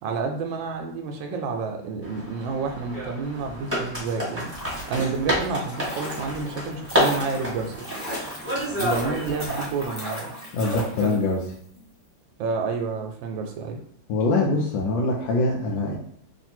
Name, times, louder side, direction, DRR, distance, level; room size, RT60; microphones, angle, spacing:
voice 1, 0.0-4.5 4.9-7.9 8.8-10.3 10.9-11.2 12.4-13.8, right 4 dB, 80° right, 3 dB, 1.3 m, -29 dB
sound 1, 2.0-9.8, equal, 10° right, 1.4 m, -30 dB
sound 2, 4.4-11.5 11.8-11.9, equal, 15° left, 0.6 m, -36 dB
voice 2, 10.5-11.4 14.1-16.0, left 2 dB, 85° left, -3 dB, 1.4 m, -23 dB
3.4 x 2.6 x 4.3 m, 0.66 s
omnidirectional pair, 2.0 m